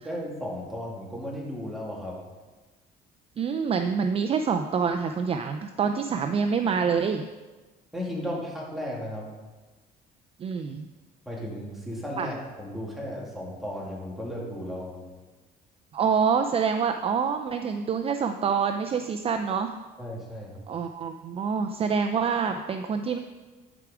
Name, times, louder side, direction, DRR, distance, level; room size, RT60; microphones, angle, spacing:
voice 1, 0.0-2.2 7.9-9.3 11.3-15.0 20.0-20.7, equal, ahead, -4 dB, 2.4 m, -35 dB
voice 2, 3.4-7.2 10.4-10.9 12.2-12.3 15.9-19.7 20.7-23.2, right 6 dB, 35° right, 6 dB, 0.4 m, -26 dB
11.0 x 4.8 x 4.9 m, 1.3 s
cardioid pair, 110°, 17 cm